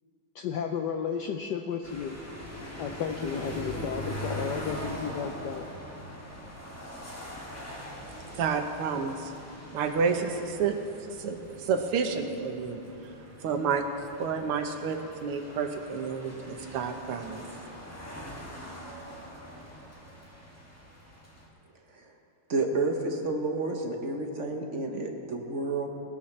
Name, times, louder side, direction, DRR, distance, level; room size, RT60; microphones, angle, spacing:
voice 1, 0.3-2.2 2.8-5.6, left 7 dB, 80° left, 4 dB, 0.9 m, -33 dB
sound 1, 1.8-21.5, equal, 5° left, 1.7 m, -42 dB
voice 2, 8.3-10.8 11.1-13.1 13.4-17.4, right 5 dB, 80° right, 5 dB, 1.9 m, -30 dB
voice 3, 22.5-25.9, right 3 dB, 50° right, 2 dB, 0.9 m, -30 dB
19.5 x 13.0 x 3.2 m, 2.8 s
omnidirectional pair, 2.4 m